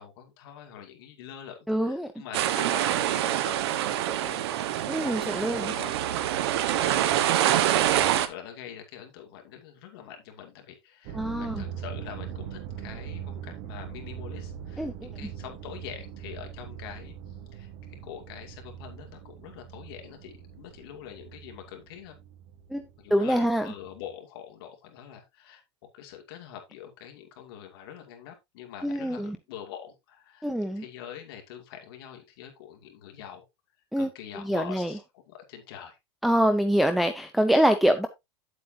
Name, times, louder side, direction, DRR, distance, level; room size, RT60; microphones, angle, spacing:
voice 1, 0.0-7.6 8.0-22.2 23.0-25.6 25.9-33.5 34.0-35.0 35.3-36.0, left 9 dB, 60° left, 2.4 m, -45 dB
voice 2, 1.7-2.1 4.9-5.7 11.1-11.6 14.8-15.1 22.7-22.8 23.1-23.7 28.8-29.4 30.4-30.8 33.9-34.1 34.4-34.9 36.2-38.1, equal, ahead, 0.5 m, -25 dB
sound 1, 2.3-8.3, right 12 dB, 70° right, 1.1 m, -25 dB
sound 2, 11.0-23.2 23.6-24.1, right 9 dB, 45° right, 1.3 m, -41 dB
9.3 x 7.8 x 2.7 m
supercardioid pair, 165°, 14 cm